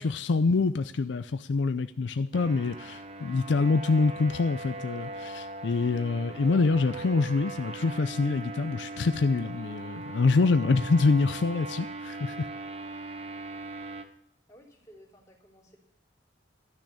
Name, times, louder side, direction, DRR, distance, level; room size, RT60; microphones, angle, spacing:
voice 1, 0.0-12.5, left 3 dB, 75° left, 11 dB, 0.5 m, -26 dB
sound 1, 2.3-14.0, right 2 dB, 35° right, 1.0 m, -40 dB
voice 2, 14.5-15.8, equal, 20° left, -3 dB, 3.3 m, -55 dB
12.5 x 6.2 x 8.4 m, 0.68 s
head